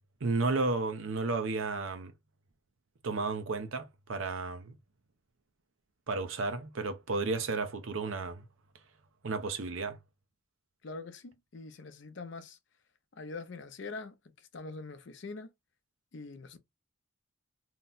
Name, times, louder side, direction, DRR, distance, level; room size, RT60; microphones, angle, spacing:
voice 1, 0.2-2.1 3.0-4.7 6.1-8.4 9.2-10.0, right 3 dB, 75° right, 0.6 m, -33 dB
voice 2, 10.8-12.6 13.1-14.2 14.5-15.5 16.1-16.6, left 3 dB, 60° left, 0.5 m, -43 dB
2.8 x 2.1 x 3.7 m
head